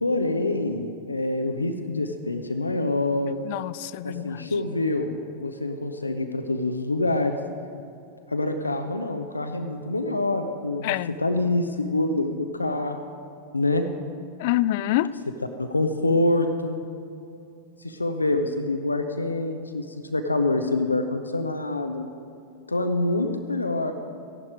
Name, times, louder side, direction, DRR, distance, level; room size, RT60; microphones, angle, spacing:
voice 1, 0.0-3.4 4.0-7.4 8.3-13.1 13.5-13.8 15.6-16.8 17.8-22.1 22.7-23.9, left 2 dB, 80° left, 6 dB, 0.7 m, -26 dB
voice 2, 3.4-4.5 10.8-11.2 14.4-15.1, left 15 dB, 50° left, 18 dB, 0.3 m, -26 dB
15.0 x 11.0 x 5.0 m, 2.7 s
figure-of-eight pair, 90°, 0 cm